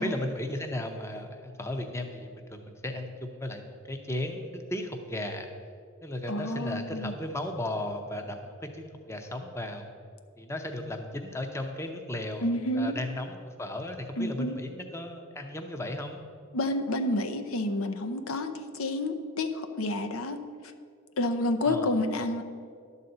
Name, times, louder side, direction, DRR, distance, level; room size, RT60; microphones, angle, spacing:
voice 1, 0.0-5.5 6.0-9.9 10.4-16.2 21.6-21.9, left 1 dB, 15° left, 5 dB, 0.6 m, -35 dB
voice 2, 6.3-7.1 12.4-13.0 14.2-14.5 16.5-20.4 21.2-22.4, left 1 dB, 75° left, 8 dB, 0.7 m, -29 dB
11.5 x 4.1 x 7.8 m, 2.2 s
head